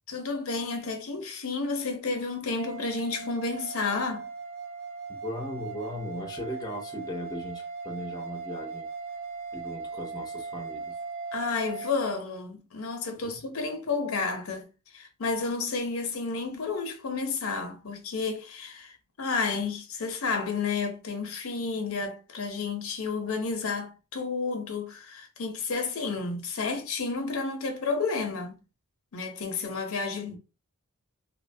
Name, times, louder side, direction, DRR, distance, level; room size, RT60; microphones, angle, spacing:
voice 1, 0.1-4.3 11.3-28.6 29.1-30.4, left 4 dB, 70° left, 0.6 m, -31 dB
sound 1, 2.6-11.9, right 4 dB, 60° right, 0.4 m, -39 dB
voice 2, 5.1-8.9 9.5-11.0 30.3-30.4, left 1 dB, 20° left, 0.5 m, -37 dB
2.6 x 2.2 x 2.6 m
head